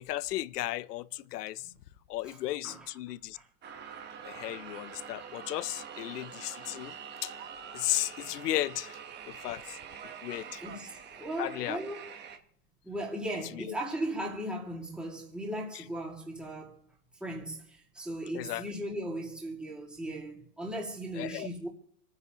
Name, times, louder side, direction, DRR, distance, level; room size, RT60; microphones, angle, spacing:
voice 1, 0.0-1.7 2.1-3.4 4.2-7.0 7.2-7.3 7.7-9.0 9.3-9.8 10.2-10.6 11.4-11.8 13.5-13.6 18.3-18.6 21.2-21.5, left 15 dB, 90° left, 0.6 m, -35 dB
sound 1, 3.6-12.4, right 7 dB, 20° right, 1.1 m, -45 dB
voice 2, 9.1-9.7 10.3-12.0 12.8-16.8 17.2-21.7, right 1 dB, ahead, 2.1 m, -38 dB
27.5 x 9.6 x 2.9 m
supercardioid pair, 135°, 46 cm